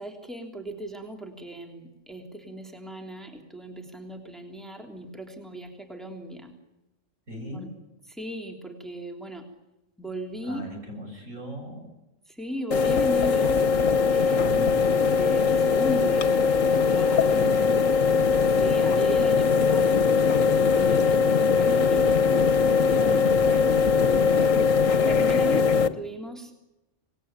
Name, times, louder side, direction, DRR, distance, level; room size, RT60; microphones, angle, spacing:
voice 1, 0.0-6.5 7.5-7.7 8.1-9.5 10.0-10.6 12.3-13.6 14.1-14.7 15.1-17.6 18.5-20.1 20.7-21.2 21.6-22.2 25.0-26.6, right 1 dB, ahead, 3 dB, 3.2 m, -37 dB
voice 2, 7.3-7.7 10.4-11.9 14.3-14.8 17.3-17.6 20.8-21.2 22.9-24.5, equal, 75° right, 3 dB, 7.8 m, -37 dB
sound 1, 12.7-25.9, left 5 dB, 80° left, 1.6 m, -21 dB
26.5 x 20.0 x 9.1 m, 0.98 s
omnidirectional pair, 1.3 m